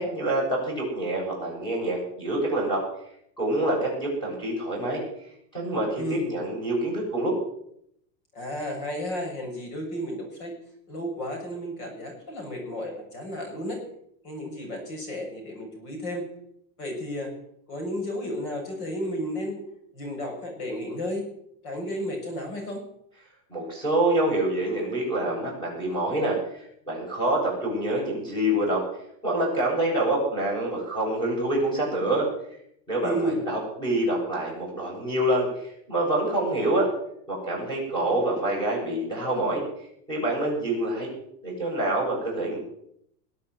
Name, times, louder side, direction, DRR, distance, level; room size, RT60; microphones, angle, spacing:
voice 1, 0.0-2.8 3.4-5.0 5.5-7.3 23.5-28.8 29.2-32.3 32.9-36.9 37.3-39.6 40.1-41.1 41.4-42.6, right 1 dB, 10° left, -4 dB, 7.8 m, -26 dB
voice 2, 6.0-6.3 8.3-10.5 10.9-13.8 14.2-16.3 16.8-17.3 17.7-19.6 19.9-21.2 21.6-22.8 33.0-33.4, equal, 60° left, 2 dB, 6.7 m, -32 dB
21.0 x 8.5 x 8.0 m, 0.73 s
supercardioid pair, 175°, 49 cm